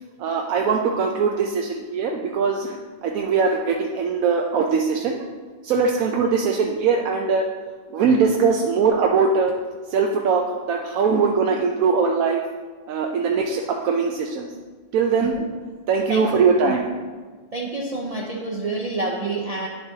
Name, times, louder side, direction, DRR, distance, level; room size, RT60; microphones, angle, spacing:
voice 1, 0.2-5.2 5.6-7.5 7.9-9.5 9.9-12.4 12.9-14.5 14.9-15.3 15.9-17.0, right 5 dB, 85° right, 1 dB, 1.1 m, -21 dB
voice 2, 16.1-16.5 17.5-19.7, right 2 dB, 35° right, -2 dB, 0.6 m, -28 dB
10.0 x 6.8 x 2.8 m, 1.5 s
omnidirectional pair, 1.4 m